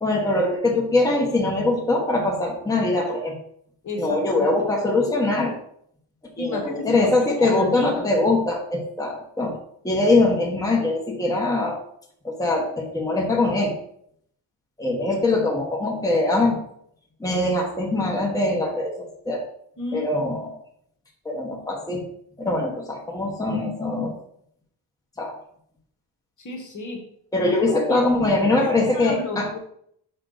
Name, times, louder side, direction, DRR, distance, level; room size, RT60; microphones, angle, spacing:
voice 1, 0.0-3.3 4.0-5.5 6.4-9.6 9.8-11.8 12.2-13.7 14.8-16.6 17.2-19.4 19.9-20.5 21.2-22.0 22.4-24.1 25.2-25.3 27.3-29.5, left 2 dB, 5° left, -1 dB, 1.2 m, -22 dB
voice 2, 3.8-4.5 6.4-7.1 7.4-8.0 19.8-20.5 26.4-27.0 27.4-27.5 27.9-28.3 28.6-29.6, left 2 dB, 40° left, 2 dB, 1.4 m, -33 dB
6.5 x 5.6 x 3.9 m, 0.68 s
cardioid pair, 150°, 47 cm